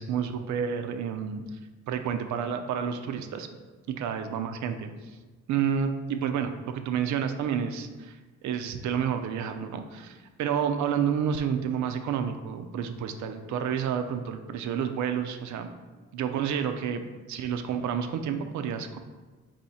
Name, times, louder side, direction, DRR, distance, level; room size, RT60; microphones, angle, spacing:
voice 1, 0.0-1.4 1.9-3.5 3.9-4.9 5.5-8.2 8.4-15.7 16.1-17.0 17.3-19.0, right 8 dB, 70° right, 7 dB, 0.5 m, -30 dB
4.2 x 2.7 x 4.1 m, 1.3 s
cardioid pair, 90°, 30 cm